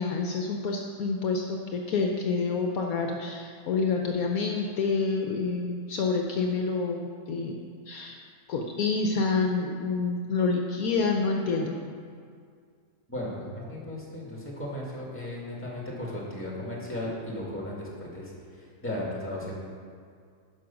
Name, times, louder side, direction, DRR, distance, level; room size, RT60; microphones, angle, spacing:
voice 1, 0.0-7.6 7.9-8.2 8.5-11.8, left 4 dB, 70° left, 2 dB, 1.1 m, -28 dB
voice 2, 13.1-19.5, left 1 dB, 10° left, -4 dB, 2.1 m, -36 dB
11.0 x 5.3 x 6.0 m, 2.2 s
omnidirectional pair, 1.7 m